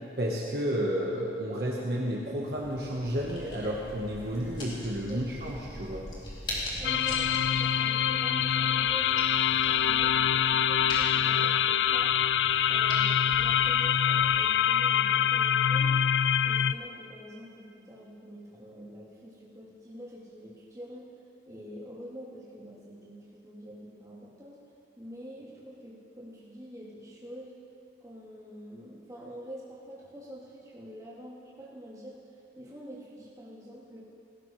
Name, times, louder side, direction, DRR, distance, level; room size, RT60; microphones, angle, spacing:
voice 1, 0.2-6.1, equal, 60° right, -3 dB, 1.5 m, -31 dB
sound 1, 2.4-14.5, left 1 dB, 25° left, 3.0 m, -42 dB
sound 2, 6.8-16.7, left 9 dB, 80° left, 0.4 m, -25 dB
voice 2, 6.8-12.1 12.7-16.0 16.4-21.0 21.5-24.6 25.0-27.5 28.0-32.2 32.5-34.0, equal, 20° right, -9 dB, 3.4 m, -46 dB
18.5 x 16.5 x 3.3 m, 2.6 s
head